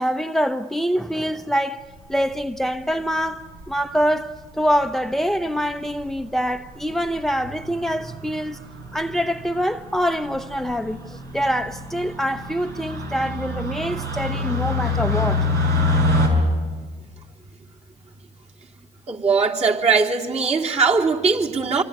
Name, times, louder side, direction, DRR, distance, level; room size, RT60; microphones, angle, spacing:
voice 1, 0.0-8.6 8.9-15.4, equal, ahead, 0.8 m, -25 dB
sound 1, 2.1-2.6 3.6-4.0 4.8-4.9 5.1-5.2 5.5-5.6 5.9-6.2 6.7-6.9 7.2-16.3, left 2 dB, 85° right, 5.8 m, -26 dB
voice 2, 19.1-21.8, right 5 dB, 40° right, 3.5 m, -20 dB
25.0 x 24.5 x 9.2 m
supercardioid pair, 70°, 17 cm